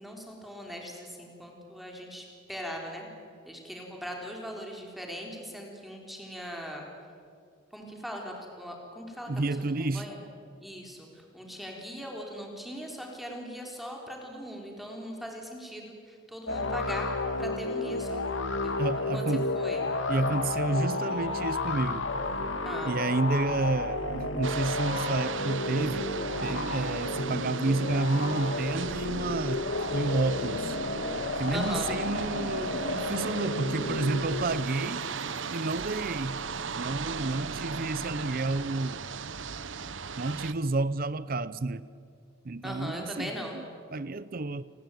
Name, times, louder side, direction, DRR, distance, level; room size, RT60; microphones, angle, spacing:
voice 1, 0.0-3.1 3.5-6.9 7.7-10.2 10.6-17.1 17.4-18.2 18.6-18.8 19.1-19.8 22.6-23.0 31.5-31.9 42.6-43.6, equal, ahead, 0 dB, 3.7 m, -40 dB
voice 2, 9.3-10.0 18.8-19.5 20.1-22.1 22.8-26.1 26.4-29.6 29.9-30.8 31.4-35.1 35.5-36.4 36.8-39.0 40.2-41.8 42.4-43.6 43.9-44.6, right 2 dB, 45° right, 17 dB, 0.7 m, -30 dB
sound 1, 16.5-34.9, left 2 dB, 75° left, 2.1 m, -32 dB
sound 2, 24.4-40.5, right 5 dB, 70° right, 1.0 m, -37 dB
29.0 x 21.0 x 9.1 m, 2.2 s
head